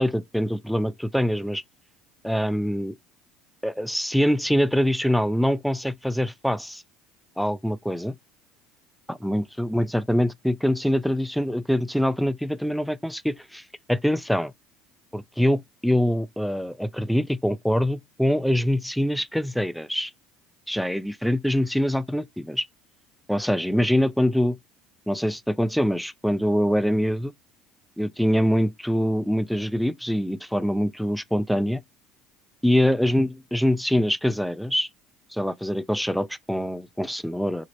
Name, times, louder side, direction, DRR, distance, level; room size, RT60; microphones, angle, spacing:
voice 1, 0.0-1.6 2.2-3.0 3.6-6.8 7.4-8.1 9.1-14.5 15.1-20.1 20.7-22.7 23.3-24.6 25.1-27.3 28.0-31.8 32.6-34.9 35.3-37.7, equal, ahead, 0.3 m, -24 dB
4.1 x 2.0 x 3.0 m
supercardioid pair, 95°, 0 cm